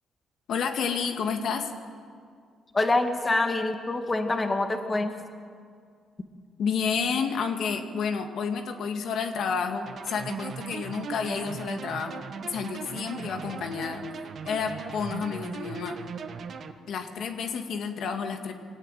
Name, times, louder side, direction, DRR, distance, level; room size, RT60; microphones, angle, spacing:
voice 1, 0.5-1.7 6.6-14.0 14.4-16.0 16.9-18.5, left 6 dB, 70° left, 5 dB, 2.0 m, -30 dB
voice 2, 2.7-5.2, left 2 dB, 25° left, 5 dB, 2.0 m, -25 dB
sound 1, 9.9-16.7, right 6 dB, 55° right, 1.4 m, -38 dB
22.5 x 16.5 x 9.2 m, 2.1 s
cardioid pair, 90°, 0 cm